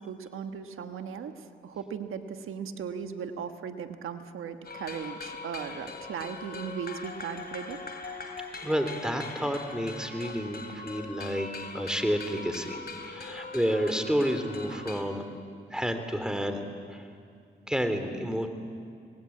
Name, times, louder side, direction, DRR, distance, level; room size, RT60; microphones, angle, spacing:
voice 1, 0.0-7.8 10.2-10.3, right 7 dB, 80° right, 8 dB, 1.4 m, -37 dB
sound 1, 4.6-15.0, left 4 dB, 50° left, 3.6 m, -41 dB
voice 2, 8.6-12.8 13.1-15.3 15.7-16.6 16.9-17.0 17.7-18.5, equal, 5° right, 7 dB, 3.5 m, -30 dB
26.0 x 20.0 x 8.8 m, 2.4 s
supercardioid pair, 50°, 21 cm